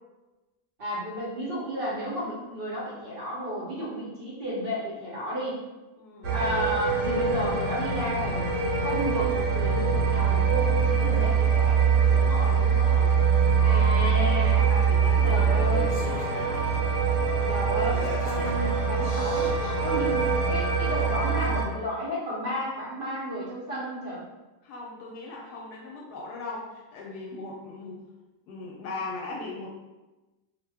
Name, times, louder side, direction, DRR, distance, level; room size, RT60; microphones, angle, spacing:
voice 1, 0.8-5.6 6.3-11.8 13.6-14.7 15.3-16.0 17.5-19.5 19.8-24.2, equal, 50° right, -7 dB, 0.7 m, -32 dB
voice 2, 6.0-6.4 12.1-13.2 14.5-16.6 24.6-28.1 28.5-29.7, left 2 dB, 75° left, -2 dB, 1.1 m, -38 dB
sound 1, 6.2-21.6, right 6 dB, 85° right, 1.2 m, -23 dB
Singing, 13.3-13.4 14.4-14.5 15.1-16.8 17.3-17.4 17.8-20.4 21.1-21.2, left 1 dB, 60° left, 0.6 m, -41 dB
2.8 x 2.1 x 3.3 m, 1.1 s
omnidirectional pair, 1.7 m